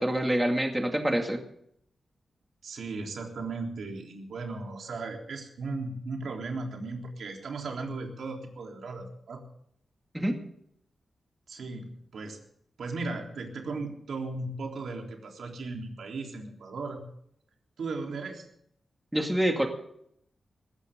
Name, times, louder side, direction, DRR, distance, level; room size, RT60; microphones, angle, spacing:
voice 1, 0.0-1.4 10.1-10.4 19.1-19.7, right 1 dB, 10° right, 3 dB, 2.2 m, -26 dB
voice 2, 2.6-9.4 11.5-12.4 12.8-17.0 17.8-18.5, right 3 dB, 80° right, 2 dB, 3.6 m, -36 dB
20.5 x 16.0 x 3.8 m, 0.70 s
wide cardioid pair, 125°, 0 cm